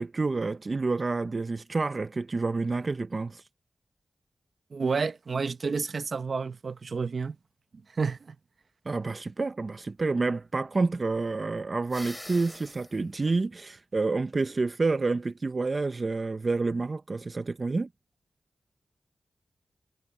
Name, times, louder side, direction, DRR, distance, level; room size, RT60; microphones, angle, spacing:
voice 1, 0.0-3.4 8.9-17.9, right 3 dB, 45° right, 0.7 m, -29 dB
voice 2, 4.7-7.4 8.0-8.4, right 5 dB, 65° right, 1.0 m, -30 dB
sound 1, 11.9-13.0, left 1 dB, 15° left, 5.5 m, -43 dB
wide cardioid pair, 70°, 0 cm